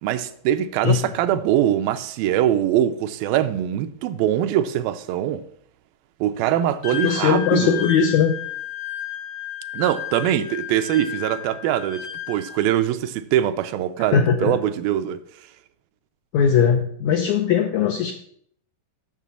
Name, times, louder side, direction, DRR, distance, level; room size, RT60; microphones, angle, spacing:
voice 1, 0.0-5.4 6.2-7.9 9.7-15.2, right 11 dB, 85° right, 2.3 m, -22 dB
Wind instrument woodwind instrument, 6.8-12.8, left 10 dB, 65° left, 1.9 m, -33 dB
voice 2, 7.0-8.3 14.0-14.5 16.3-18.1, left 7 dB, 85° left, 1.7 m, -19 dB
7.4 x 6.6 x 6.8 m
omnidirectional pair, 4.1 m